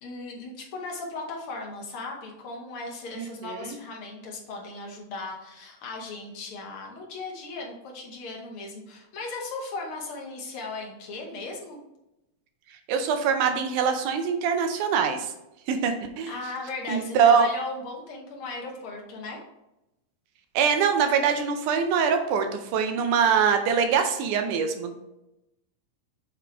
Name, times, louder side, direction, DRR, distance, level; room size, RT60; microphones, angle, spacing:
voice 1, 0.0-11.8 16.3-19.4, left 3 dB, 85° left, -1 dB, 1.2 m, -37 dB
voice 2, 3.2-3.7 12.9-15.3 15.7-16.3 16.9-17.5 20.6-25.0, right 6 dB, 80° right, 6 dB, 1.9 m, -23 dB
8.0 x 3.8 x 3.3 m, 0.89 s
omnidirectional pair, 3.9 m